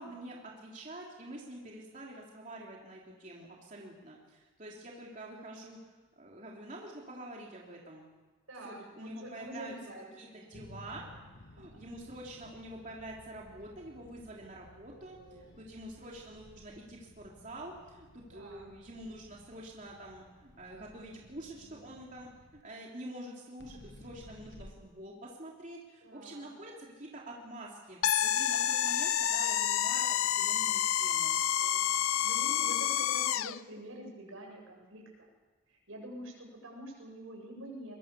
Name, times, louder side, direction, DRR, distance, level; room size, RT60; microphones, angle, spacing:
voice 1, 0.0-5.8 6.2-8.0 8.6-9.7 10.2-11.1 11.4-15.2 15.6-22.3 22.6-31.4, right 1 dB, 35° right, -3 dB, 3.3 m, -47 dB
voice 2, 8.5-10.1 10.4-10.5 11.5-11.8 15.2-15.5 18.3-18.7 21.1-21.3 21.5-21.8 26.0-26.5 31.6-35.3 35.7-38.0, right 1 dB, 80° right, 1 dB, 7.6 m, -47 dB
sound 1, 10.5-22.6 23.6-24.7, left 1 dB, 55° left, 1.3 m, -56 dB
sound 2, 28.0-33.6, left 10 dB, 85° left, 0.6 m, -29 dB
25.0 x 22.5 x 7.0 m, 1.3 s
head